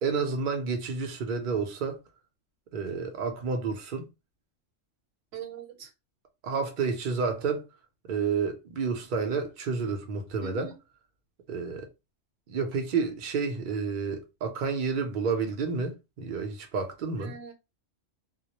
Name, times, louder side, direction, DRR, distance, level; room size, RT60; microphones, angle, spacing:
voice 1, 0.0-2.0 2.7-4.1 6.4-7.7 8.1-10.7 11.5-11.9 12.5-17.3, right 5 dB, 50° right, 0.6 m, -30 dB
voice 2, 5.3-5.9 10.4-10.7 17.2-17.5, right 9 dB, 85° right, 1.0 m, -41 dB
2.2 x 2.0 x 2.8 m
omnidirectional pair, 1.3 m